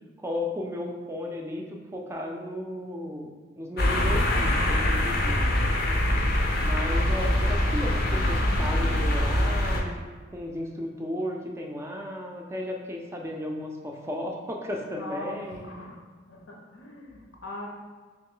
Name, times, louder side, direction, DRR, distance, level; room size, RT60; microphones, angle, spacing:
voice 1, 0.2-3.3 3.5-5.8 6.6-10.0 10.3-15.7, left 1 dB, 15° right, 1 dB, 0.3 m, -34 dB
sound 1, 3.8-9.8, left 1 dB, 55° left, 0.5 m, -24 dB
voice 2, 14.9-17.7, left 2 dB, 85° left, -1 dB, 0.8 m, -41 dB
3.1 x 3.0 x 3.7 m, 1.4 s
head